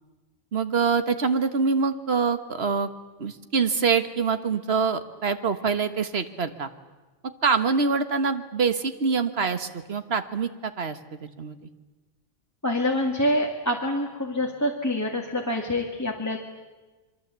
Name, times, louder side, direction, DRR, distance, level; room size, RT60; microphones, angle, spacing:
voice 1, 0.5-2.9 3.2-6.7 7.4-11.7, right 5 dB, 85° right, 9 dB, 1.7 m, -25 dB
voice 2, 12.6-16.4, left 1 dB, 15° left, 0 dB, 2.0 m, -26 dB
27.5 x 23.0 x 8.2 m, 1.2 s
omnidirectional pair, 1.0 m